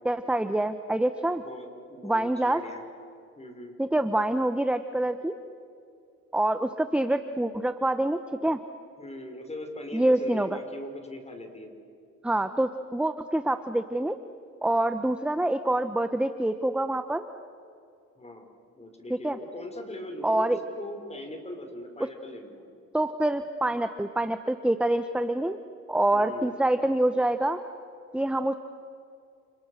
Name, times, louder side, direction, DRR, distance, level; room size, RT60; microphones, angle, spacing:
voice 1, 0.0-1.4 2.0-2.6 3.8-5.3 6.3-8.6 9.9-10.5 12.2-14.2 14.6-17.2 19.1-19.4 20.2-20.6 22.9-25.6 25.9-27.6 28.1-28.5, right 1 dB, 5° right, 9 dB, 1.1 m, -26 dB
voice 2, 1.4-2.8 3.4-3.7 9.0-11.7 18.2-18.5 18.8-20.5 20.8-22.7 26.1-26.5, left 1 dB, 20° left, 5 dB, 6.0 m, -40 dB
30.0 x 30.0 x 6.7 m, 2.5 s
cardioid pair, 90°, 30 cm